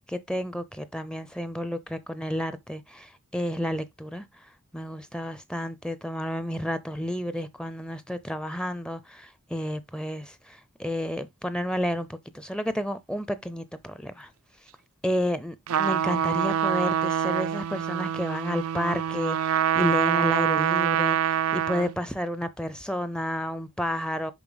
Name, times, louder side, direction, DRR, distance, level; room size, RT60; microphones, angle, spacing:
voice 1, 0.0-14.3 14.6-14.7 15.0-24.3, left 1 dB, 5° left, 0.5 m, -31 dB
Trumpet, 15.7-22.0, right 9 dB, 75° right, 0.4 m, -25 dB
7.0 x 5.3 x 3.9 m
head